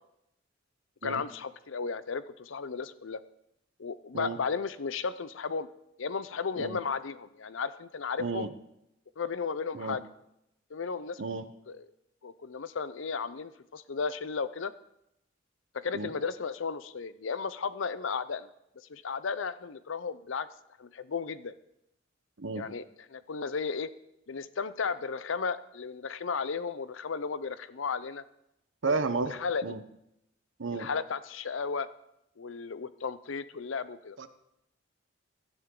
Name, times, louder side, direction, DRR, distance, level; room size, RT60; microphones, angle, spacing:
voice 1, 1.0-3.2 3.8-5.7 6.0-8.5 9.2-10.1 10.7-11.2 11.7-11.9 12.2-14.7 15.7-18.5 18.9-20.5 20.8-21.5 22.6-22.8 23.1-23.9 24.3-28.2 28.9-29.6 30.7-31.9 32.4-34.2, left 5 dB, 80° left, 15 dB, 0.6 m, -34 dB
voice 2, 28.8-29.3 29.6-29.8 30.6-30.9 34.2-34.3, right 4 dB, 75° right, 10 dB, 0.9 m, -32 dB
16.5 x 11.5 x 3.8 m, 0.82 s
head